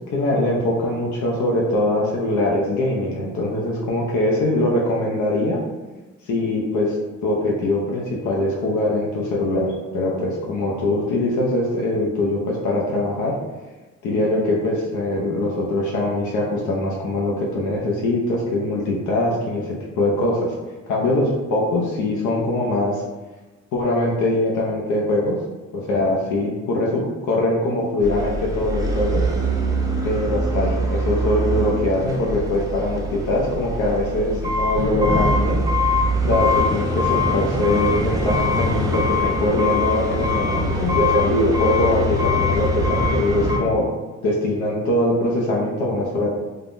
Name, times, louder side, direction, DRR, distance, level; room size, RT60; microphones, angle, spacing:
voice 1, 0.1-5.6 6.3-7.0 7.2-9.7 9.9-13.3 14.0-20.5 20.9-23.0 23.7-25.4 25.7-29.3 30.0-35.6 36.2-43.9 44.2-46.3, left 1 dB, 80° left, -2 dB, 0.6 m, -22 dB
sound 1, 28.0-43.6, left 1 dB, 10° right, 0.5 m, -23 dB
3.3 x 2.2 x 2.5 m, 1.2 s
cardioid pair, 90°, 30 cm